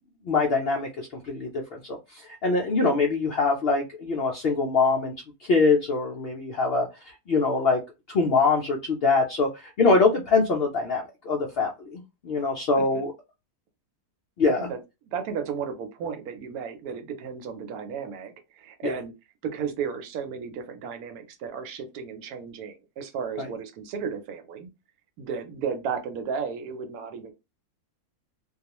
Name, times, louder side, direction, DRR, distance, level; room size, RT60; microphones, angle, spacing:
voice 1, 0.2-5.1 5.5-7.8 8.1-13.1 14.4-14.6 18.8-18.9 23.4-23.5, left 4 dB, 80° left, 0 dB, 0.5 m, -24 dB
voice 2, 12.7-13.0 14.6-14.8 15.1-19.1 19.4-24.7 25.2-27.3, right 6 dB, 75° right, 6 dB, 1.1 m, -34 dB
2.3 x 2.3 x 2.8 m, 0.25 s
omnidirectional pair, 1.6 m